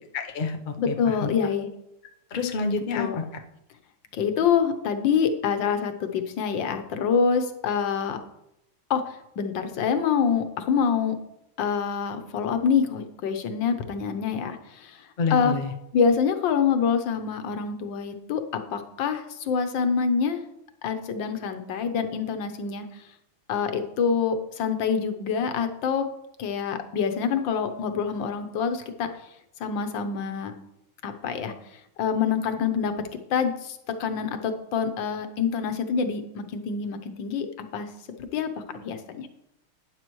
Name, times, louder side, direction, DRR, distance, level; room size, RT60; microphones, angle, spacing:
voice 1, 0.1-1.3 2.3-3.2 15.2-15.7, left 4 dB, 85° left, 4 dB, 0.4 m, -28 dB
voice 2, 0.8-1.7 3.0-3.2 4.1-8.2 8.9-11.2 11.6-15.5 15.9-20.4 20.8-22.9 23.5-26.1 26.4-29.1 29.6-30.5 31.0-31.5 32.0-32.9 33.3-37.5 37.7-37.9 38.2-39.3, left 6 dB, 65° left, 7 dB, 1.6 m, -26 dB
12.0 x 9.5 x 3.1 m, 0.83 s
omnidirectional pair, 2.3 m